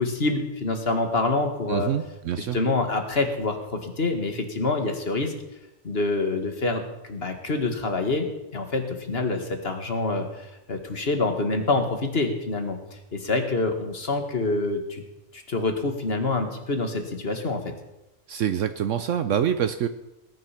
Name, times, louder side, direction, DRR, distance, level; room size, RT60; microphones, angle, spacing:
voice 1, 0.0-1.9 2.4-5.3 5.8-12.8 13.1-15.0 15.3-17.7, left 3 dB, 50° left, 5 dB, 2.1 m, -26 dB
voice 2, 1.7-2.6 18.3-19.9, right 9 dB, 70° right, 10 dB, 1.1 m, -25 dB
20.0 x 10.5 x 5.9 m, 0.95 s
omnidirectional pair, 1.3 m